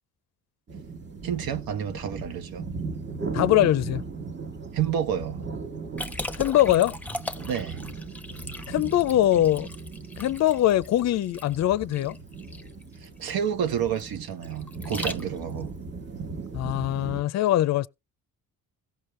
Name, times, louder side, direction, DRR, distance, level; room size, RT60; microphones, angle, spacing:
sound 1, 0.7-17.2, right 4 dB, 30° right, 1.3 m, -38 dB
voice 1, 1.2-2.6 4.7-5.4 7.5-7.8 13.0-15.8, right 8 dB, 75° right, 1.3 m, -29 dB
voice 2, 3.3-4.0 6.4-7.0 8.7-9.7 10.2-12.2 16.5-17.9, left 13 dB, 50° left, 0.5 m, -22 dB
Liquid, 6.0-15.6, left 1 dB, 5° left, 0.8 m, -39 dB
17.0 x 5.9 x 3.2 m
cardioid pair, 115°, 36 cm